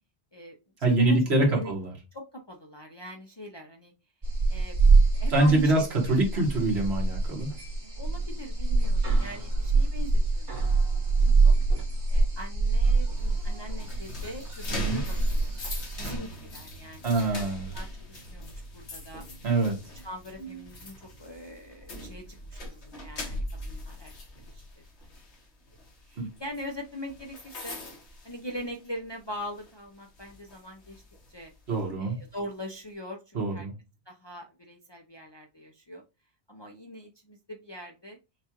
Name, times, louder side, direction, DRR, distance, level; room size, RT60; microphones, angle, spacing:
voice 1, 0.3-1.2 1.4-1.7 2.1-3.9 4.5-4.8 5.1-6.5 7.9-11.5 12.1-15.5 16.0-19.2 20.0-24.1 24.4-24.8 26.0-27.8 28.2-31.0 31.3-31.5 32.0-33.7 34.1-36.0 36.5-38.2, equal, 35° left, 1 dB, 0.5 m, -42 dB
voice 2, 0.8-1.9 5.3-5.8 6.1-7.5 14.7-15.0 17.0-17.7 19.4-19.8 26.2-26.3 31.7-32.2 33.3-33.7, right 2 dB, 70° right, 0 dB, 1.7 m, -24 dB
sound 1, 4.2-16.2, right 3 dB, 45° right, 1.6 m, -25 dB
sound 2, 13.2-29.1 29.4-29.7 30.2-31.8, left 1 dB, 90° left, 1.5 m, -41 dB
5.9 x 2.4 x 2.9 m, 0.27 s
omnidirectional pair, 1.1 m